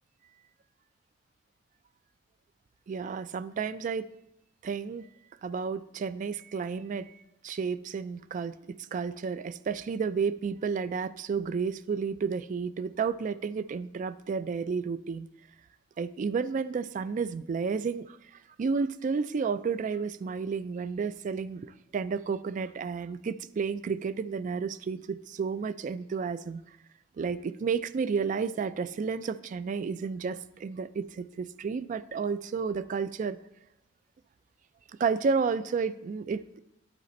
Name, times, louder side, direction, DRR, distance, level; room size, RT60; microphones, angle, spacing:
voice 1, 2.9-4.1 4.6-5.0 5.4-7.1 7.4-8.5 8.9-15.3 16.0-18.2 18.6-26.6 27.2-33.4 35.0-36.6, right 5 dB, 45° right, 14 dB, 0.3 m, -31 dB
11.0 x 4.2 x 4.1 m, 0.88 s
head